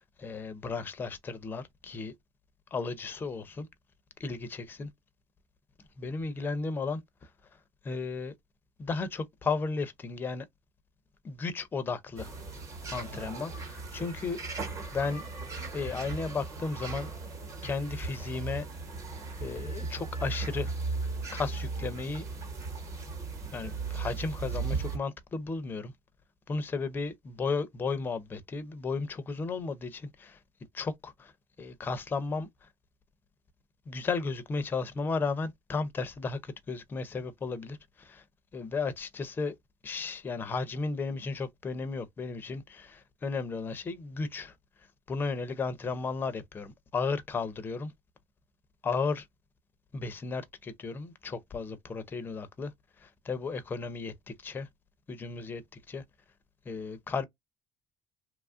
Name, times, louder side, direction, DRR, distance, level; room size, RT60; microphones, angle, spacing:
voice 1, 0.0-2.1 2.7-3.7 4.2-4.9 6.0-7.0 7.8-8.3 8.8-10.5 11.2-12.3 12.9-14.4 14.9-15.2 15.7-17.1 17.6-18.7 19.4-20.7 21.3-22.2 23.5-25.9 26.5-30.4 30.7-31.3 31.6-32.5 33.9-38.2 38.5-39.6 39.8-44.5 45.1-47.9 48.8-49.3 49.9-52.7 53.0-54.7 55.1-55.6 55.9-56.0 56.7-57.2, left 4 dB, 20° left, 0.5 m, -34 dB
sound 1, 12.2-25.0, right 4 dB, 30° right, 1.0 m, -37 dB
2.9 x 2.3 x 2.4 m
cardioid pair, 160°, 10 cm